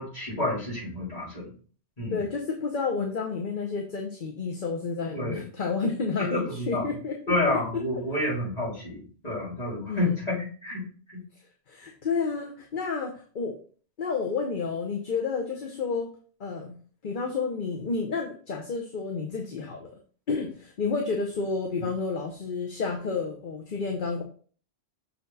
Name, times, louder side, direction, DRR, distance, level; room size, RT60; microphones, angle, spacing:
voice 1, 0.0-1.5 2.0-2.2 5.1-5.4 6.2-6.9 7.3-10.8 11.1-11.2, left 2 dB, 35° left, -7 dB, 3.7 m, -29 dB
voice 2, 2.1-7.1 7.5-7.6 9.9-10.1 11.7-13.6 14.0-16.1 16.4-16.7 17.0-19.9 20.3-24.2, left 4 dB, 50° left, 1 dB, 1.0 m, -30 dB
6.3 x 4.4 x 4.0 m, 0.42 s
omnidirectional pair, 1.1 m